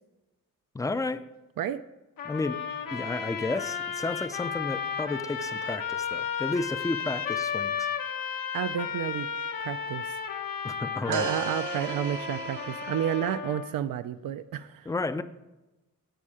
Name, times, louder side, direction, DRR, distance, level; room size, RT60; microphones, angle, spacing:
voice 1, 0.7-1.2 2.2-2.6 2.9-7.9 10.6-11.3 14.9-15.2, left 3 dB, 10° left, 0.3 m, -32 dB
sound 1, 2.2-13.7, left 7 dB, 85° left, 1.3 m, -33 dB
sound 2, 4.3-4.4 11.1-13.4, right 5 dB, 60° right, 1.0 m, -36 dB
voice 2, 8.5-9.3 9.6-10.2 11.1-14.9, right 10 dB, 85° right, 0.5 m, -31 dB
16.0 x 5.4 x 4.9 m
wide cardioid pair, 170°, 33 cm